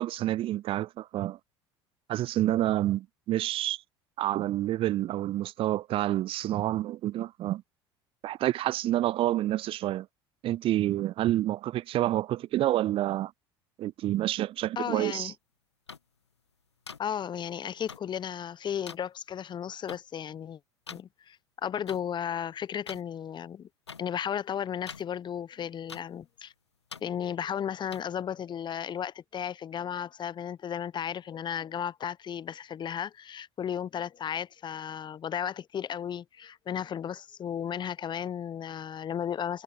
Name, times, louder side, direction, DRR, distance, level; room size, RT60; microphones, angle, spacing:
voice 1, 0.0-1.4 2.1-3.8 4.2-7.6 8.2-10.1 10.4-13.3 13.8-15.3, right 14 dB, 40° right, 0.4 m, -28 dB
voice 2, 14.8-15.3 17.0-20.6 20.9-23.7 24.0-26.5 27.0-39.6, left 9 dB, 35° left, 1.0 m, -34 dB
sound 1, 15.9-16.0 16.9-17.0 17.9-18.0 18.9-19.0 19.9-20.0 20.9-21.0 21.9-22.0 22.9-23.0 23.9-24.0 24.9-25.0 25.9-26.0 26.9-27.0 27.9-28.0, left 5 dB, 85° left, 1.5 m, -42 dB
figure-of-eight pair, 65°, 14 cm